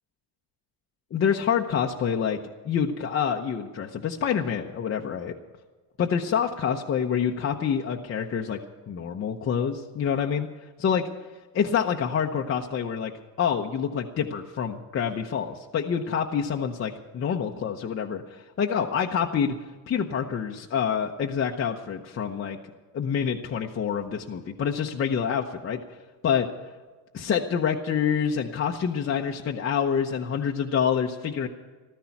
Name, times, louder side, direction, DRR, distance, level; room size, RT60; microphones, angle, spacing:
voice 1, 1.1-2.4 2.6-5.3 6.0-8.6 8.9-10.5 10.8-11.1 11.5-13.1 13.4-19.5 19.9-22.6 22.9-25.8 26.2-26.5 27.1-31.5, left 7 dB, 35° left, 1 dB, 0.8 m, -27 dB
14.5 x 13.0 x 5.9 m, 1.3 s
cardioid pair, 130°, 39 cm